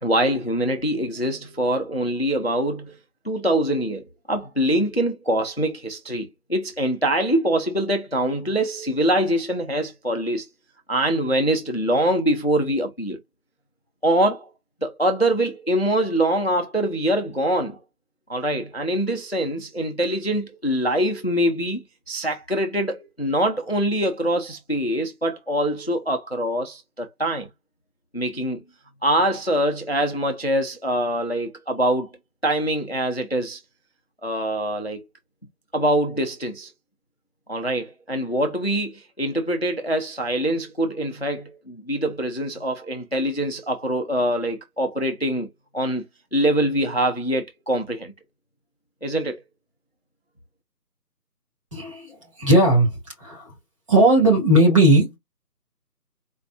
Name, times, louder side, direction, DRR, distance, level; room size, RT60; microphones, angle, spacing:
voice 1, 0.0-3.0 3.2-10.5 10.9-13.2 14.0-14.5 14.8-17.8 18.3-27.5 28.1-28.6 29.0-32.1 32.4-33.6 34.2-35.0 35.7-36.7 37.5-45.5 45.7-46.0 46.3-48.1 49.0-49.4, right 1 dB, 40° left, 0.4 m, -24 dB
voice 2, 51.7-53.5 53.9-55.2, right 1 dB, 20° right, 1.8 m, -17 dB
4.3 x 2.5 x 2.3 m
figure-of-eight pair, 165°, 48 cm